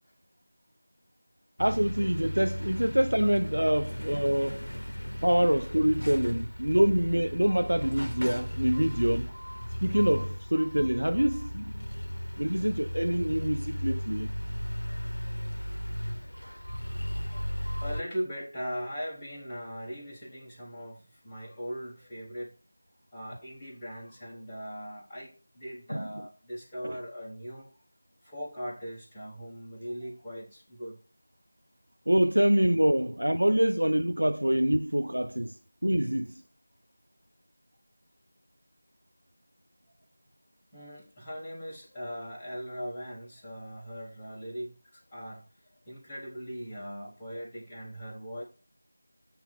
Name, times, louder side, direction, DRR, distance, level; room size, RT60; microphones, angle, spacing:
sound 1, 1.6-18.0, equal, 80° left, 0.6 m, -35 dB
voice 1, 1.6-4.7 5.2-9.3 9.8-11.8 12.4-14.3 25.9-26.0 26.8-27.0 32.1-36.4, equal, 75° right, 0.4 m, -26 dB
voice 2, 14.8-15.7 16.6-22.6 23.1-27.7 28.2-31.0 40.7-45.4 45.8-48.4, equal, 10° left, 1.4 m, -40 dB
8.9 x 3.0 x 6.2 m
figure-of-eight pair, 170°, 0 cm